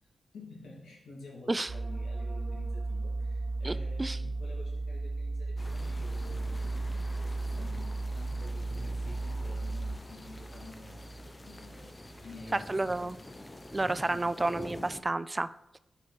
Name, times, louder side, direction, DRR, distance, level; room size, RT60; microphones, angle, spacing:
voice 1, 0.3-13.2 14.1-14.4, left 3 dB, 90° left, -3 dB, 2.5 m, -50 dB
sound 1, 1.7-13.0 13.3-13.6, right 2 dB, 55° right, 1.1 m, -35 dB
voice 2, 3.6-4.2 12.7-13.2 13.7-15.5, right 2 dB, 25° right, 14 dB, 0.4 m, -31 dB
sound 2, 5.6-15.0, left 1 dB, 25° left, 0.7 m, -47 dB
5.7 x 4.7 x 5.9 m, 0.81 s
cardioid pair, 60°, 0 cm